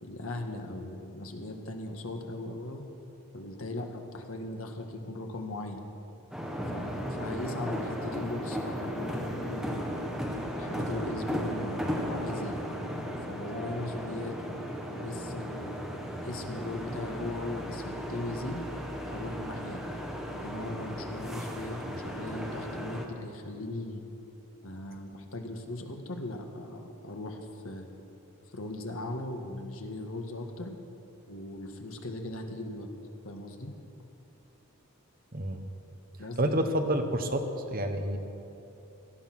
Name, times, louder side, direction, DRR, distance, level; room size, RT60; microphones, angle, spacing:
voice 1, 0.0-2.8 3.3-5.8 6.7-10.0 10.6-12.6 13.3-18.6 19.0-19.8 20.3-24.0 24.6-27.9 28.5-30.7 31.3-32.9 33.2-33.7 36.2-36.6, left 2 dB, 70° left, 4 dB, 1.6 m, -38 dB
sound 1, 6.3-23.1, equal, ahead, 1.4 m, -36 dB
voice 2, 35.3-35.7 36.4-37.4 37.7-38.2, right 1 dB, 40° right, 6 dB, 1.2 m, -28 dB
18.0 x 13.0 x 6.1 m, 2.8 s
head